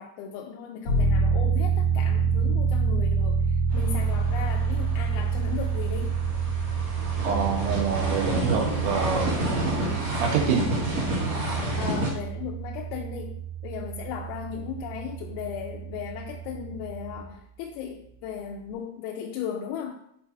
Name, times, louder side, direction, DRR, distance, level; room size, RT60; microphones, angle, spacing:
voice 1, 0.0-6.2 11.8-13.4 13.6-20.0, left 8 dB, 85° left, 0 dB, 2.9 m, -36 dB
sound 1, 0.8-17.2, right 5 dB, 60° left, 1.5 m, -28 dB
sound 2, 3.7-12.1, right 1 dB, 45° right, 2.6 m, -30 dB
voice 2, 7.2-9.3 10.2-10.7, right 6 dB, 85° right, 1 dB, 3.4 m, -26 dB
7.6 x 4.9 x 2.7 m, 0.70 s
omnidirectional pair, 5.3 m